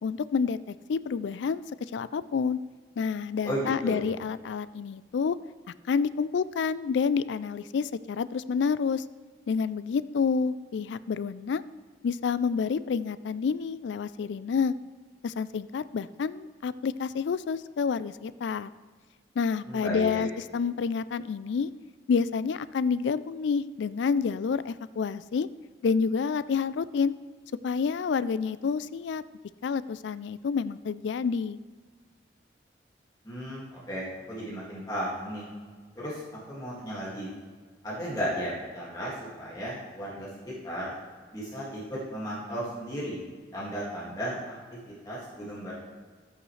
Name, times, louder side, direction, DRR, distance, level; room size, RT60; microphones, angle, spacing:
voice 1, 0.0-2.6 3.0-5.4 5.9-9.0 9.5-11.6 12.0-14.7 15.2-18.7 19.4-21.7 22.1-25.5 25.8-27.1 27.6-29.2 29.6-31.6, left 5 dB, 80° left, 16 dB, 0.3 m, -28 dB
voice 2, 3.4-4.0 19.7-20.3 33.2-35.5 36.0-36.2 36.5-37.3 37.8-40.9 41.3-43.2 43.5-44.4 44.9-45.8, equal, 20° left, -7 dB, 2.1 m, -34 dB
13.0 x 8.5 x 3.2 m, 1.5 s
head